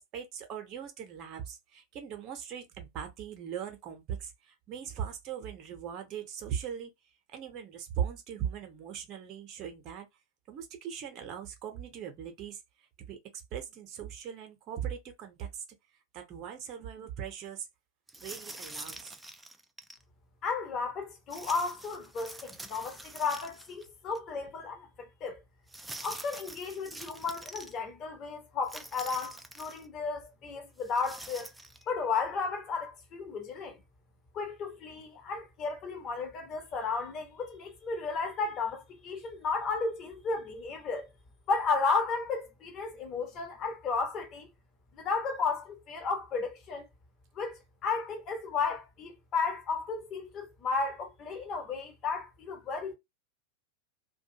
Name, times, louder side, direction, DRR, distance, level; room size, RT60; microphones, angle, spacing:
voice 1, 0.0-6.9 7.3-10.1 10.5-15.6 16.1-17.7 18.2-19.2, right 9 dB, 35° right, 0.7 m, -39 dB
sound 1, 18.1-20.0 21.3-23.9 24.2-24.3 25.7-27.7 28.6-29.9 30.8-31.8, right 2 dB, 5° right, 0.3 m, -45 dB
voice 2, 20.4-25.4 26.0-31.5 31.8-33.8 34.3-41.1 41.5-44.5 44.9-46.9 47.3-52.9, left 4 dB, 35° left, 0.8 m, -33 dB
2.5 x 2.2 x 2.7 m
figure-of-eight pair, 90°, 0 cm